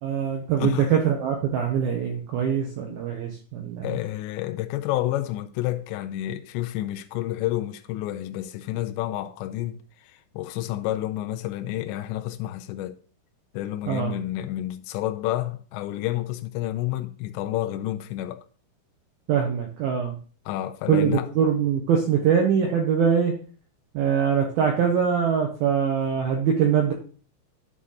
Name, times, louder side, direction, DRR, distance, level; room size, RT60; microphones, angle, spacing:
voice 1, 0.0-4.0 13.9-14.2 19.3-20.2 20.9-23.4 23.9-26.9, right 7 dB, 75° right, 2.2 m, -23 dB
voice 2, 3.8-9.8 10.0-13.0 13.5-18.4 20.5-21.3, left 14 dB, 85° left, 2.7 m, -29 dB
12.5 x 4.2 x 3.8 m
omnidirectional pair, 5.5 m